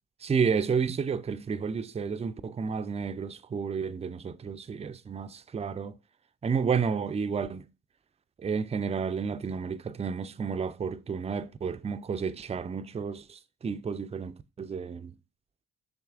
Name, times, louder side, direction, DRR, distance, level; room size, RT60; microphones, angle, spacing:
voice 1, 0.2-6.0 6.4-7.7 8.4-15.1, right 6 dB, 20° right, 0.3 m, -31 dB
5.8 x 3.2 x 2.4 m
supercardioid pair, 50°, 34 cm